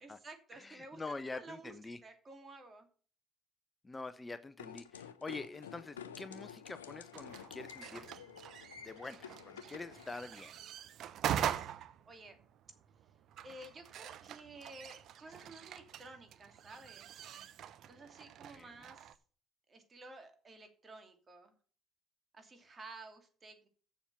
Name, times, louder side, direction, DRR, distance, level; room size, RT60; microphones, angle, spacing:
voice 1, 0.0-1.0 1.3-1.7 2.0-2.9 11.3-11.7 12.1-12.4 13.4-17.3 17.9-19.1 19.7-21.5 22.3-23.7, right 2 dB, 35° right, 2.7 m, -53 dB
voice 2, 0.5-2.0 3.8-8.1 8.8-10.6 18.5-18.8, left 3 dB, 20° left, 0.7 m, -46 dB
sound 1, 4.6-10.1, left 8 dB, 90° left, 0.6 m, -50 dB
sound 2, 7.1-19.2, right 10 dB, 60° right, 0.7 m, -43 dB
7.3 x 7.1 x 7.8 m
hypercardioid pair, 55°, 0 cm